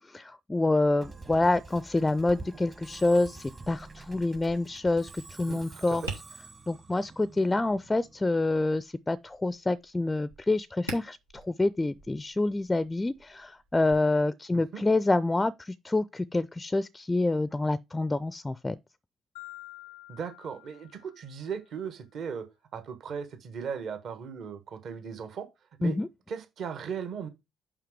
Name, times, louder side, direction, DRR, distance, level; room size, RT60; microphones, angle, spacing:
voice 1, 0.0-6.0 6.7-18.8 25.8-26.1, left 2 dB, 15° left, 0.4 m, -27 dB
Musical instrument, 1.0-8.3, right 3 dB, 30° right, 1.0 m, -47 dB
Tap, 6.0-14.0, right 2 dB, 90° right, 1.4 m, -47 dB
voice 2, 14.5-14.8 20.1-22.5 22.7-25.5 25.8-26.0 26.3-27.3, right 6 dB, 50° right, 1.2 m, -37 dB
Marimba xylophone, 19.4-21.6, left 19 dB, 75° left, 0.6 m, -48 dB
5.8 x 4.9 x 4.7 m
figure-of-eight pair, 45°, 0 cm